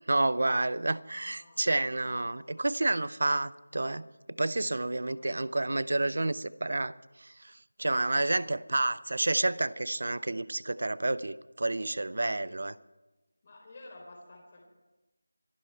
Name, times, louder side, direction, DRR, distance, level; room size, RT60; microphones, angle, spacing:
voice 1, 0.1-12.7, right 2 dB, 60° right, 0.6 m, -30 dB
voice 2, 1.1-2.5 5.1-5.5 8.1-8.9 10.3-10.4 12.4-12.5 13.4-14.6, left 2 dB, 35° left, 3.7 m, -54 dB
26.5 x 11.5 x 4.4 m
figure-of-eight pair, 165°, 0 cm